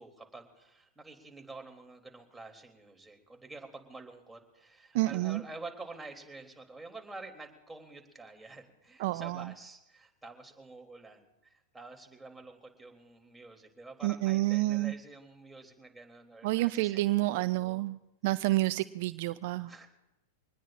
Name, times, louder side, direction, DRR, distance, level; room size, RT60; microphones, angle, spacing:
voice 1, 0.0-17.8 19.7-19.9, right 3 dB, 10° right, 2.9 m, -48 dB
voice 2, 4.9-5.4 9.0-9.5 14.0-14.9 16.4-18.0 18.2-19.7, right 18 dB, 55° right, 0.4 m, -29 dB
24.5 x 20.0 x 2.5 m
hypercardioid pair, 100°, 0 cm